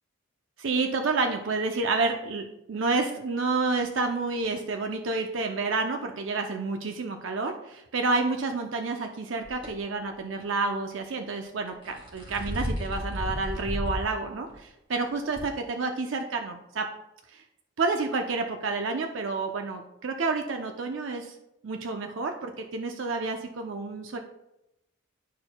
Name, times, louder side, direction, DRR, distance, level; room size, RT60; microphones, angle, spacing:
voice 1, 0.6-16.9 17.3-17.4 17.8-21.3 21.6-24.2, right 3 dB, 70° right, 4 dB, 0.6 m, -29 dB
sound 1, 9.4-9.7 11.7-14.1 14.5-14.6 15.4-15.5, left 1 dB, 25° right, 2.4 m, -33 dB
11.0 x 4.4 x 2.2 m, 0.88 s
head